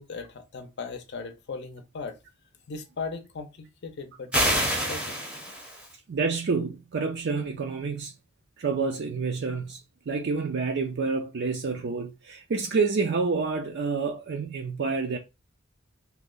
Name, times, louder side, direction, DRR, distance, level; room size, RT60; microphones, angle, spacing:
voice 1, 0.0-2.2 2.7-5.2, left 4 dB, 55° left, 0.6 m, -38 dB
sound 1, 4.3-5.9, equal, 5° right, 0.7 m, -27 dB
voice 2, 6.1-8.1 8.6-9.8 10.1-15.2, right 4 dB, 55° right, 0.4 m, -28 dB
2.8 x 2.1 x 3.7 m
head